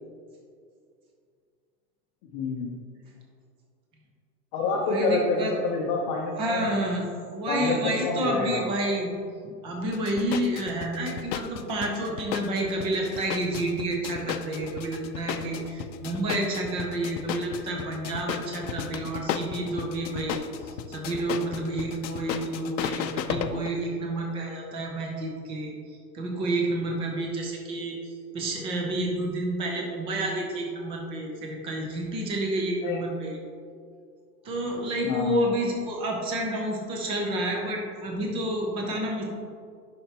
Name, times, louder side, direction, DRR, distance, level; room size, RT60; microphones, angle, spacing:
voice 1, 2.3-2.7 4.5-6.7 7.5-8.6 32.8-33.0 35.0-35.4, left 3 dB, 25° left, -3 dB, 0.7 m, -27 dB
voice 2, 4.8-5.5 6.4-9.1 9.4-33.4 34.4-39.2, right 1 dB, 10° right, 0 dB, 0.5 m, -30 dB
sound 1, 9.9-23.7, left 9 dB, 90° left, 0.7 m, -34 dB
10.0 x 5.8 x 2.9 m, 2.2 s
hypercardioid pair, 150°, 50 cm